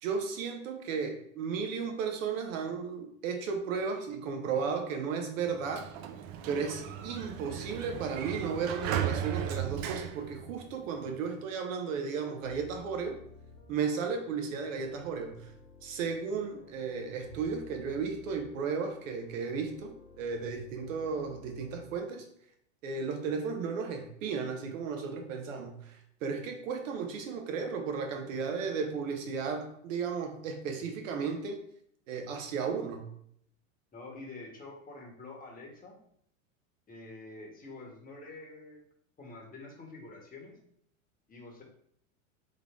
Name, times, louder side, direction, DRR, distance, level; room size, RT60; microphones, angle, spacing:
voice 1, 0.0-5.9 6.5-13.2 13.7-15.5 15.8-22.3 22.8-31.6 32.1-33.1, right 5 dB, 75° right, 5 dB, 1.1 m, -34 dB
Sliding door, 5.5-11.1, right 10 dB, 45° right, 0.5 m, -36 dB
sound 1, 12.4-22.0, left 4 dB, 35° left, 1.2 m, -55 dB
voice 2, 33.9-36.0 36.9-38.8 39.2-40.6 41.3-41.6, left 2 dB, 20° left, -1 dB, 1.5 m, -47 dB
3.7 x 3.4 x 3.7 m, 0.69 s
hypercardioid pair, 100°, 40 cm